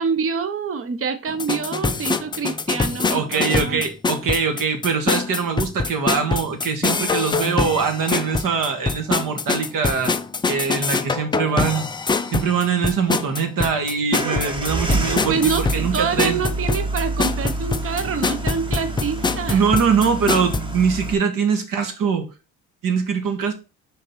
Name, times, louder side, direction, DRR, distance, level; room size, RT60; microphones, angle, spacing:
voice 1, 0.0-3.8 15.2-19.6, right 5 dB, 35° right, 1.0 m, -26 dB
sound 1, 1.3-20.6, left 4 dB, 15° left, 0.3 m, -24 dB
voice 2, 3.1-10.1 10.5-11.9 12.3-16.4 19.5-22.3 22.8-23.5, right 6 dB, 55° right, 1.8 m, -22 dB
sound 2, 14.1-21.1, right 2 dB, 15° right, 1.1 m, -28 dB
5.1 x 4.1 x 5.5 m
cardioid pair, 100°, 39 cm